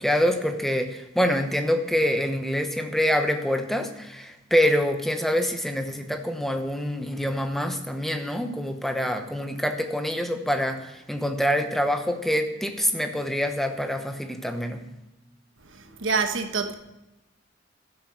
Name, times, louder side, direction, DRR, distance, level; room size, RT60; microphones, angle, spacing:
voice 1, 0.0-14.9, equal, ahead, 1.0 m, -26 dB
voice 2, 15.6-16.7, right 4 dB, 80° right, 1.3 m, -27 dB
13.0 x 7.8 x 6.0 m
head